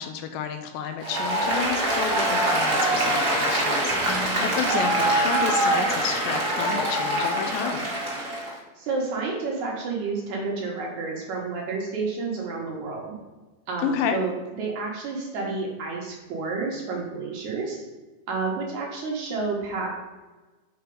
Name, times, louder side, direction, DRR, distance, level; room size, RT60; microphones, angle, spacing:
voice 1, 0.0-7.9 13.8-14.2, left 8 dB, 80° left, 7 dB, 2.2 m, -30 dB
Applause, 1.0-8.5, right 1 dB, 45° right, 1.3 m, -24 dB
voice 2, 8.8-13.1 13.7-17.8 18.3-19.9, right 4 dB, 65° right, -1 dB, 2.2 m, -30 dB
6.7 x 4.3 x 5.2 m, 1.2 s
omnidirectional pair, 4.2 m